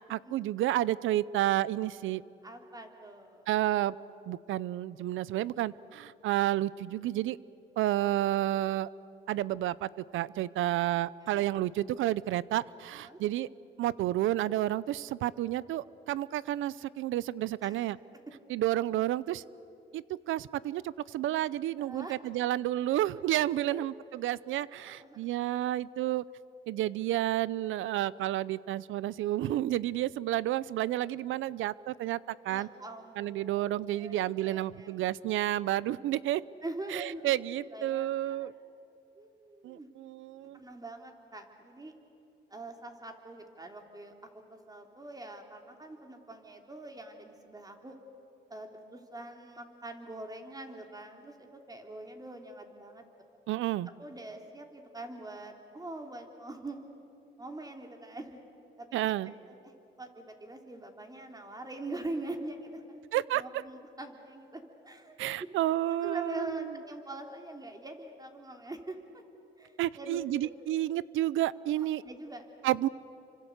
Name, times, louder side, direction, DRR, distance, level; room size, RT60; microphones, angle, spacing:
voice 1, 0.1-2.2 3.5-3.9 4.3-7.4 7.8-8.9 9.3-13.5 13.8-18.0 18.5-19.4 19.9-26.2 26.7-32.2 32.4-32.7 33.2-36.4 36.9-38.5 39.6-40.6 53.5-53.9 58.9-59.3 63.1-63.4 65.2-66.8 69.8-72.0 72.6-72.9, right 14 dB, 80° right, 20 dB, 0.6 m, -30 dB
voice 2, 2.4-3.4 8.0-8.1 11.2-11.4 13.0-13.2 17.6-17.8 21.8-22.1 22.9-23.0 23.5-23.9 25.0-25.3 32.5-34.2 34.4-35.0 36.6-37.4 37.7-38.5 39.2-39.9 40.5-41.9 42.5-44.1 44.5-48.0 48.5-53.0 54.0-56.9 57.4-58.4 58.8-59.1 59.6-59.7 60.0-65.2 66.0-69.2 69.6-70.5 71.8-72.4, right 2 dB, 20° right, 4 dB, 3.4 m, -44 dB
29.0 x 25.5 x 8.1 m, 2.7 s
cardioid pair, 90°, 20 cm